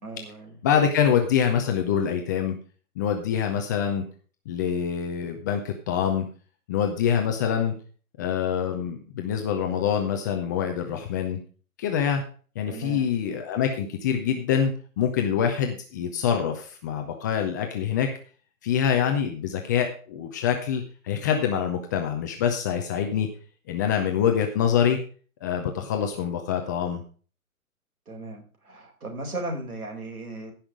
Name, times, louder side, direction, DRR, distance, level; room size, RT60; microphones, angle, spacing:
voice 1, 0.0-0.6 12.7-13.1 28.1-30.5, right 2 dB, 70° right, 4 dB, 4.6 m, -36 dB
voice 2, 0.6-2.6 3.0-4.0 4.5-6.2 6.7-7.7 8.2-11.4 11.8-12.2 12.6-18.1 18.6-23.3 23.7-25.0 25.4-27.0, left 8 dB, 15° left, 4 dB, 0.6 m, -25 dB
15.5 x 5.8 x 5.0 m, 0.40 s
figure-of-eight pair, 135°, 45 cm